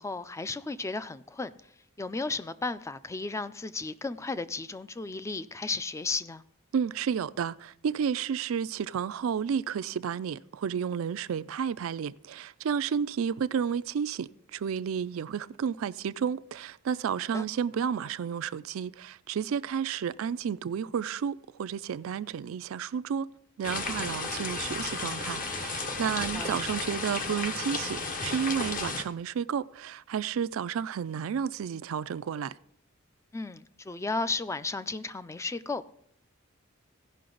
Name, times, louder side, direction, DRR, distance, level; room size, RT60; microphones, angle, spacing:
voice 1, 0.0-1.5 2.0-6.4 17.3-17.4 26.3-26.6 33.3-35.9, left 3 dB, 15° left, 0.4 m, -34 dB
voice 2, 6.7-23.3 23.6-32.5, right 7 dB, 75° right, 0.4 m, -31 dB
sound 1, 23.6-29.0, left 3 dB, 40° left, 0.9 m, -33 dB
16.0 x 5.8 x 3.8 m
head